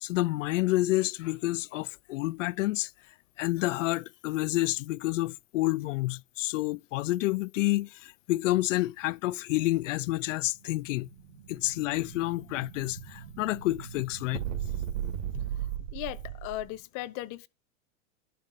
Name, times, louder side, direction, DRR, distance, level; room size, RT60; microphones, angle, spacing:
voice 1, 0.0-2.9 3.4-11.1 11.5-14.4 15.3-15.4, left 18 dB, 70° left, 0.5 m, -29 dB
Explosion, 10.6-16.7, right 10 dB, 65° right, 2.5 m, -37 dB
voice 2, 15.9-17.5, left 16 dB, 45° left, 0.9 m, -37 dB
11.5 x 5.8 x 6.3 m
hypercardioid pair, 120°, 40 cm